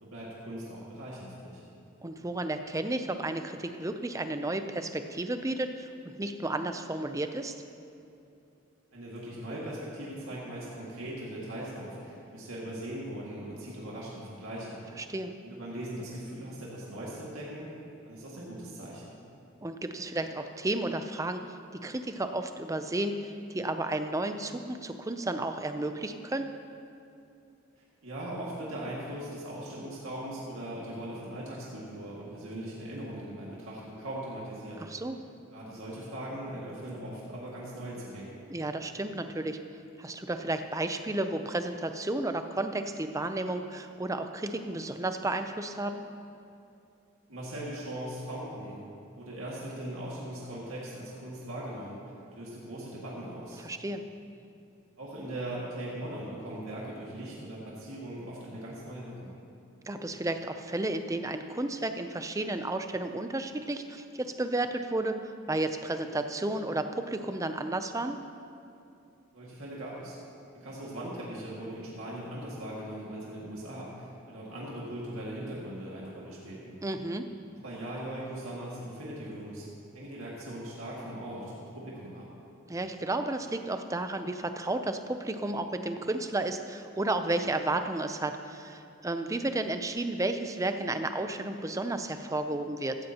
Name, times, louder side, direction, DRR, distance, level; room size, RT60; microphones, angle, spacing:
voice 1, 0.0-1.6 8.9-14.8 15.4-17.7 18.0-19.1 27.8-34.8 35.5-38.3 47.3-48.8 49.1-52.0 52.2-53.6 55.0-59.3 69.3-70.2 70.5-76.8 77.5-79.7 79.9-82.3, right 1 dB, 75° right, -5 dB, 2.0 m, -40 dB
voice 2, 2.0-7.5 15.0-15.3 19.6-21.4 21.7-26.5 34.8-35.2 38.5-39.6 40.0-46.0 53.6-54.0 59.9-68.2 76.8-77.3 82.7-93.0, right 2 dB, 15° right, 8 dB, 0.5 m, -32 dB
15.5 x 14.0 x 2.9 m, 2.6 s
head